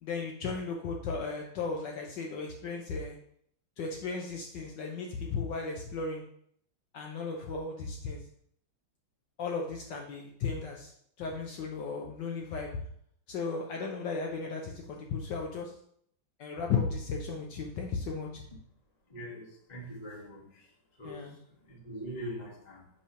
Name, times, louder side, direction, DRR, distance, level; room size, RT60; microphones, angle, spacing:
voice 1, 0.0-3.2 3.8-6.2 6.9-8.2 9.4-10.9 11.2-12.7 13.3-15.7 16.4-18.4 21.0-21.4, left 4 dB, 70° left, 1 dB, 1.3 m, -35 dB
voice 2, 19.1-20.7 21.0-21.3 21.7-22.9, equal, 25° left, -2 dB, 1.2 m, -42 dB
5.5 x 3.3 x 5.5 m, 0.67 s
omnidirectional pair, 2.2 m